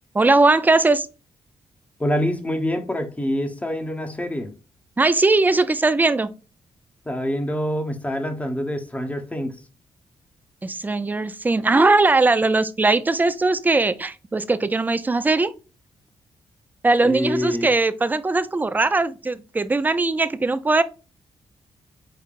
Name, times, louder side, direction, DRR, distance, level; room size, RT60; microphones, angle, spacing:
voice 1, 0.1-1.1 5.0-6.3 10.6-15.5 16.8-20.8, right 3 dB, 15° right, 0.4 m, -19 dB
voice 2, 2.0-4.5 7.1-9.5 17.0-17.7, equal, 15° left, 0.9 m, -26 dB
5.3 x 3.9 x 2.5 m
cardioid pair, 105°, 10 cm